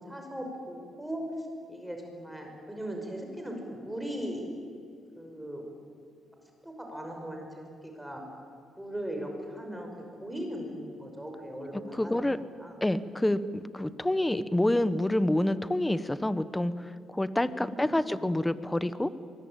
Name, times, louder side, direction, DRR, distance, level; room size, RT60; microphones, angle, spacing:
voice 1, 0.0-4.4 5.2-5.6 6.6-8.2 8.8-9.9 10.2-12.2 12.6-12.8 17.4-18.2, equal, 5° right, 2 dB, 5.7 m, -38 dB
voice 2, 11.9-12.4 12.8-19.1, left 1 dB, 10° left, 14 dB, 1.1 m, -28 dB
24.0 x 22.0 x 9.0 m, 2.4 s
cardioid pair, 90°, 0 cm